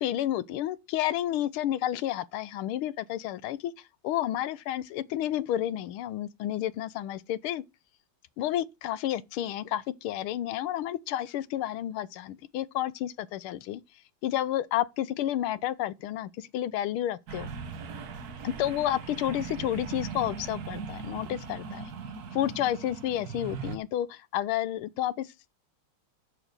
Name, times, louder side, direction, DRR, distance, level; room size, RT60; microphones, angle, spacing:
voice 1, 0.0-7.6 8.4-13.8 14.2-17.5 18.4-21.9 22.3-25.5, left 12 dB, 85° left, 1.6 m, -31 dB
sound 1, 17.3-23.8, right 6 dB, 50° right, 1.5 m, -39 dB
7.5 x 6.6 x 6.7 m
omnidirectional pair, 2.3 m